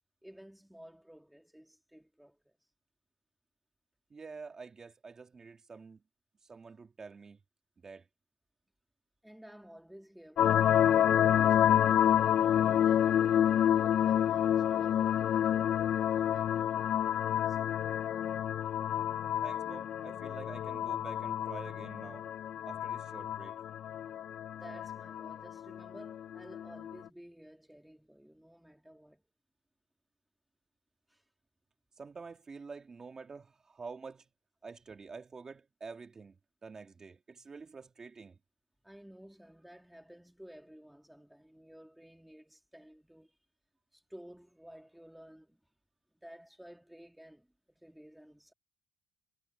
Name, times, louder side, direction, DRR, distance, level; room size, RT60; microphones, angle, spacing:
voice 1, 0.2-2.5 9.2-12.1 12.7-17.0 17.4-17.8 24.6-29.2 31.1-31.2 38.8-43.4 43.9-45.6 46.1-48.5, equal, ahead, 2.5 m, -54 dB
voice 2, 4.1-6.0 6.4-7.4 7.8-8.1 19.4-22.3 22.7-23.6 32.0-34.3 34.6-38.4, right 4 dB, 30° right, 1.7 m, -48 dB
sound 1, 10.4-26.9, left 10 dB, 55° left, 0.4 m, -29 dB
cardioid pair, 110°, 2 cm